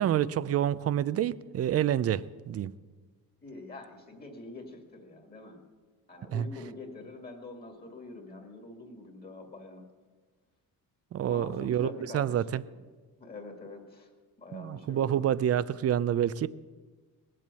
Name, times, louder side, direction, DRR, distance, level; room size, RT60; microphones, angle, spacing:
voice 1, 0.0-2.7 6.3-6.5 11.1-11.9 12.1-12.6 14.5-16.5, right 10 dB, 40° right, 0.5 m, -28 dB
voice 2, 3.4-5.6 6.1-9.9 11.3-12.8 13.2-14.1 14.4-15.2, left 2 dB, 25° left, 2.1 m, -45 dB
20.0 x 7.6 x 8.2 m
cardioid pair, 150°, 36 cm